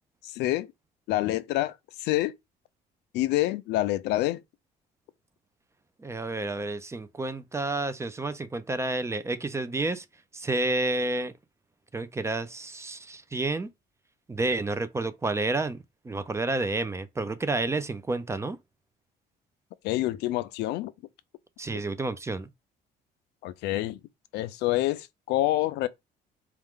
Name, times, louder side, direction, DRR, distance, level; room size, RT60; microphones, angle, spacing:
voice 1, 0.2-0.7 1.1-2.3 3.1-4.4 19.8-20.9 23.4-24.0 24.3-25.9, left 16 dB, 85° left, 0.5 m, -27 dB
voice 2, 6.0-10.0 10.3-11.3 11.9-13.7 14.3-15.8 16.0-18.6 21.6-22.5, right 2 dB, 15° right, 0.5 m, -30 dB
4.4 x 2.4 x 3.6 m
cardioid pair, 110°, 17 cm